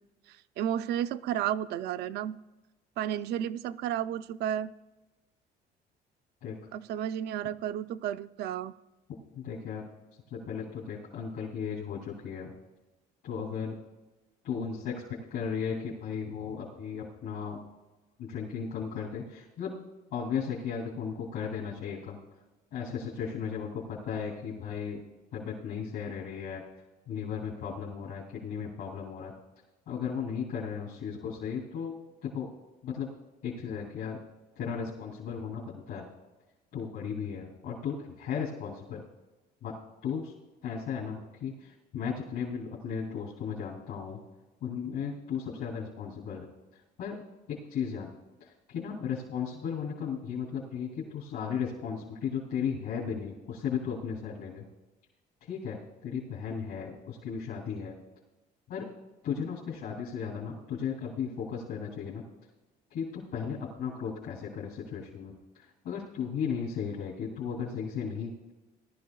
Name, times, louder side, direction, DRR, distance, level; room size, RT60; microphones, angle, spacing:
voice 1, 0.3-2.4 3.0-4.7 6.7-8.7, right 10 dB, 75° right, 13 dB, 0.4 m, -32 dB
voice 2, 9.3-9.9 10.3-12.5 13.2-13.7 14.4-17.6 18.2-19.8 20.1-22.2 22.7-25.0 25.3-26.6 27.1-29.3 29.9-31.9 32.2-32.5 32.8-33.1 33.4-34.2 34.5-36.0 36.7-39.0 39.6-39.7 40.0-40.3 40.6-44.2 44.6-46.5 47.0-47.2 47.5-48.1 48.4-54.6 55.4-57.9 58.7-58.9 59.2-62.2 62.9-68.5, left 7 dB, 80° left, -7 dB, 3.2 m, -35 dB
18.5 x 12.0 x 2.3 m, 1.1 s
cardioid pair, 110°, 17 cm